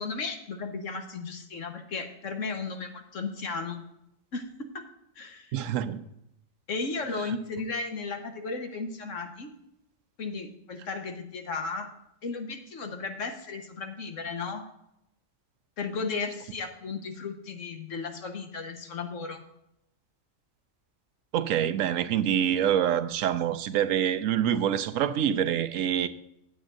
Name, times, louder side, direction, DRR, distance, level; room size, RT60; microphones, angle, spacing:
voice 1, 0.0-3.8 4.3-4.8 5.2-5.5 6.7-9.5 10.2-11.9 12.2-14.7 15.8-19.4, left 4 dB, 70° left, 1.5 m, -35 dB
voice 2, 5.5-6.1 7.3-7.4 21.3-26.1, right 10 dB, 80° right, 1.0 m, -26 dB
16.0 x 8.1 x 2.6 m
omnidirectional pair, 1.4 m